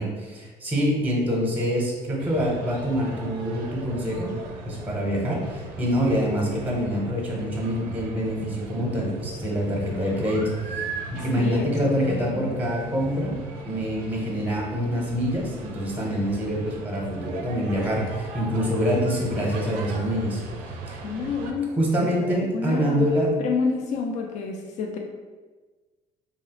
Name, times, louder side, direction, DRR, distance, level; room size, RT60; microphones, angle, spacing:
voice 1, 0.0-4.3 4.6-13.4 13.7-20.4 20.9-21.0 21.8-23.3, equal, 10° right, -2 dB, 0.7 m, -25 dB
sound 1, 2.2-21.5, right 3 dB, 75° right, 0.4 m, -38 dB
voice 2, 11.4-12.6 21.0-23.1 23.4-25.0, left 4 dB, 50° left, 2 dB, 0.4 m, -29 dB
2.8 x 2.0 x 2.8 m, 1.3 s
supercardioid pair, 70°, 15 cm